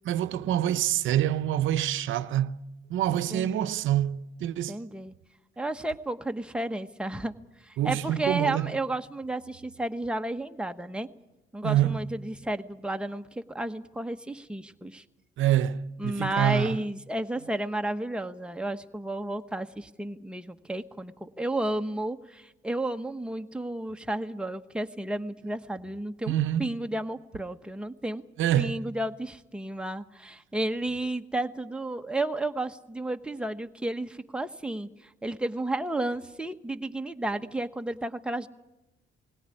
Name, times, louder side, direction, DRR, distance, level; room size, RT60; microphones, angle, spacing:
voice 1, 0.0-2.6 2.9-4.8 7.8-8.8 11.6-12.0 15.4-16.8 26.3-26.7 28.4-28.8, right 11 dB, 80° right, 0.7 m, -26 dB
voice 2, 3.3-3.8 4.7-5.1 5.6-7.3 7.6-11.1 11.5-15.0 16.0-28.2 28.6-34.9 35.2-38.5, right 1 dB, 5° right, 1.2 m, -32 dB
20.5 x 17.5 x 9.9 m
cardioid pair, 90°, 20 cm